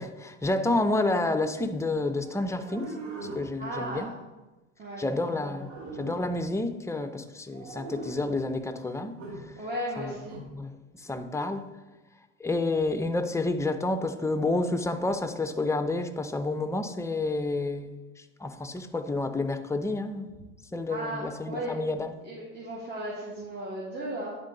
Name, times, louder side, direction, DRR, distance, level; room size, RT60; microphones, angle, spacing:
voice 1, 0.0-3.0 3.3-4.1 5.0-5.7 6.0-9.1 10.0-10.1 10.5-11.6 12.4-20.3 20.7-22.1, left 2 dB, 10° left, 0.5 m, -29 dB
sound 1, 2.2-3.5 5.2-6.4 7.5-8.4 9.2-9.4 10.2-10.4, right 2 dB, 80° right, 1.8 m, -41 dB
voice 2, 3.6-4.1 4.8-5.2 9.6-10.4 20.9-21.8 22.2-24.4, right 1 dB, 25° right, 1.7 m, -35 dB
10.5 x 3.8 x 3.9 m
hypercardioid pair, 85°, 37 cm